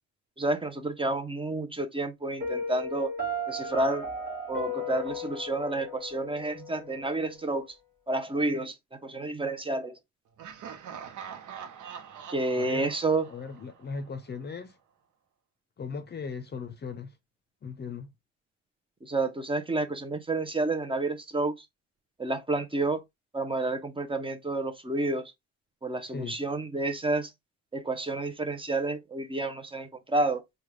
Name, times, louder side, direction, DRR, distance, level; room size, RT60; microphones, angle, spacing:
voice 1, 0.4-3.1 3.5-4.1 4.5-7.6 8.1-8.7 9.0-10.0 12.3-13.3 19.0-21.7 22.2-23.0 23.3-25.3 25.8-27.3 27.7-30.4, right 2 dB, 15° right, 0.6 m, -30 dB
Piano, 2.4-7.3, left 1 dB, 35° right, 1.4 m, -35 dB
Laughter, 10.4-14.3, right 7 dB, 75° right, 0.8 m, -44 dB
voice 2, 12.6-12.9 13.3-14.7 15.8-17.1 17.6-18.1 26.1-26.4, left 5 dB, 35° left, 0.6 m, -38 dB
3.5 x 2.2 x 3.1 m
cardioid pair, 90°, 30 cm